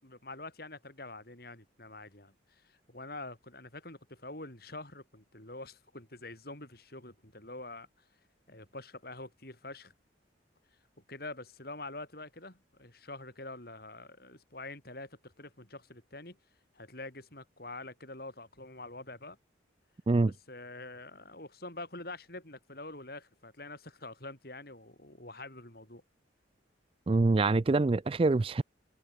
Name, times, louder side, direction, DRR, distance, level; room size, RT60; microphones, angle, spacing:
voice 1, 0.0-7.9 8.5-9.9 11.1-16.4 16.7-19.4 20.3-26.0, left 2 dB, 50° left, 5.5 m, -46 dB
voice 2, 27.1-28.6, right 3 dB, 30° right, 0.3 m, -25 dB
head